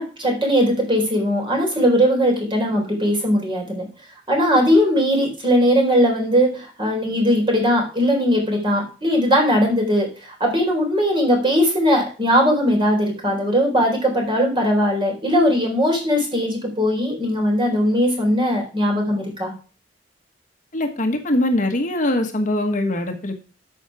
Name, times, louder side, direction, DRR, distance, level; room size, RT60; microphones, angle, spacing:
voice 1, 0.0-3.9 4.3-19.5, equal, 30° right, 1 dB, 4.2 m, -19 dB
voice 2, 20.7-23.4, left 1 dB, 45° left, 4 dB, 1.4 m, -22 dB
12.5 x 5.8 x 4.8 m, 0.37 s
head